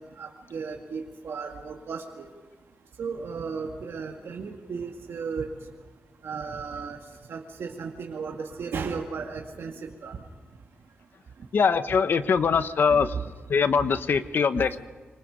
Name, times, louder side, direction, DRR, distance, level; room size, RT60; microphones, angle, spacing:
voice 1, 0.0-2.3 3.0-5.5 6.2-7.0 7.3-10.2 13.0-13.2 14.5-14.8, right 5 dB, 75° right, 0 dB, 2.2 m, -35 dB
voice 2, 11.5-13.2 13.5-14.9, left 6 dB, 55° left, 11 dB, 1.1 m, -22 dB
27.0 x 25.0 x 5.1 m, 1.4 s
wide cardioid pair, 165°, 4 cm